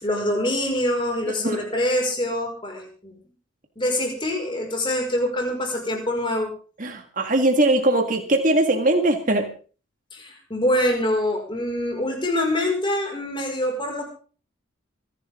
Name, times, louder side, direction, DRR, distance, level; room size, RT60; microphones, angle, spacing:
voice 1, 0.0-3.2 3.8-6.5 10.1-14.0, left 1 dB, 25° left, 1 dB, 5.7 m, -25 dB
voice 2, 1.4-1.7 6.8-9.5, right 1 dB, 40° right, 4 dB, 2.0 m, -21 dB
26.5 x 11.0 x 3.8 m, 0.39 s
head